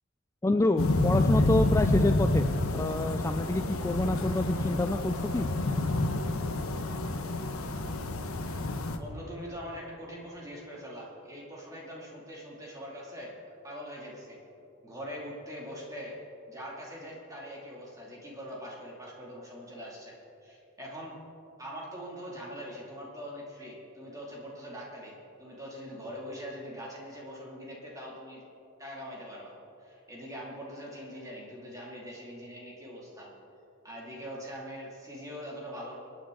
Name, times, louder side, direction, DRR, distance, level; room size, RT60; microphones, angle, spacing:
voice 1, 0.4-2.5 2.7-5.5, left 2 dB, 15° left, 7 dB, 0.3 m, -27 dB
sound 1, 0.8-9.0, left 2 dB, 75° left, 1.1 m, -28 dB
voice 2, 9.0-13.4 13.6-14.4 14.8-16.2 16.5-21.2 21.6-28.4 28.8-33.3 33.8-36.0, equal, 15° right, -4 dB, 2.6 m, -42 dB
25.5 x 9.8 x 3.8 m, 3.0 s
head